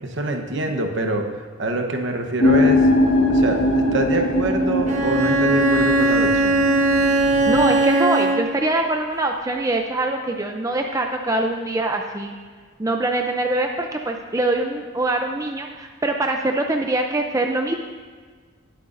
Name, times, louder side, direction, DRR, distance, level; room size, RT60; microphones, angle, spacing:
voice 1, 0.0-1.3 1.6-2.8 3.3-6.6, right 2 dB, 60° right, 4 dB, 1.0 m, -25 dB
sound 1, 2.4-7.7, left 1 dB, 80° left, 1.4 m, -21 dB
Bowed string instrument, 4.9-8.7, right 2 dB, 35° right, 1.0 m, -19 dB
voice 2, 7.3-12.3 12.8-17.7, right 2 dB, 15° right, 3 dB, 0.4 m, -23 dB
19.0 x 8.0 x 2.6 m, 1.5 s
head